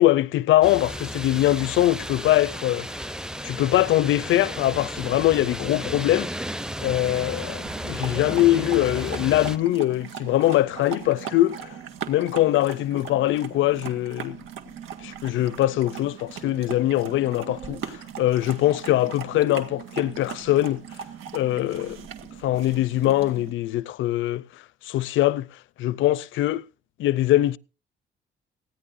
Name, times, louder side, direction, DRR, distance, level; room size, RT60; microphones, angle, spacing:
voice 1, 0.0-2.9 3.4-6.3 6.8-11.7 12.1-14.4 15.0-20.8 21.3-22.1 22.4-24.4 24.8-25.5 25.8-26.6 27.0-27.6, left 14 dB, 80° left, 0.5 m, -22 dB
sound 1, 0.6-9.6, equal, 5° right, 0.6 m, -34 dB
sound 2, 6.8-23.5, right 8 dB, 90° right, 1.9 m, -39 dB
19.5 x 15.5 x 2.6 m
cardioid pair, 90°, 20 cm